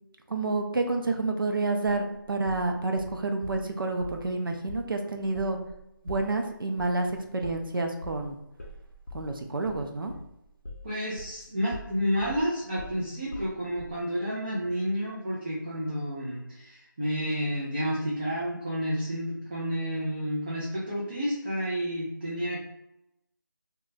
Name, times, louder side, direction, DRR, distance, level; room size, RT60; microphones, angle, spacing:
voice 1, 0.3-5.6 6.0-8.4 9.1-10.1, right 3 dB, 80° right, 4 dB, 0.5 m, -29 dB
sound 1, 1.8-3.6 4.0-4.3 4.7-4.9 5.2-11.4 11.7-14.0, left 2 dB, 40° left, 0.4 m, -43 dB
voice 2, 10.8-22.6, equal, 30° right, -7 dB, 0.5 m, -30 dB
2.3 x 2.2 x 3.1 m, 0.85 s
figure-of-eight pair, 170°, 11 cm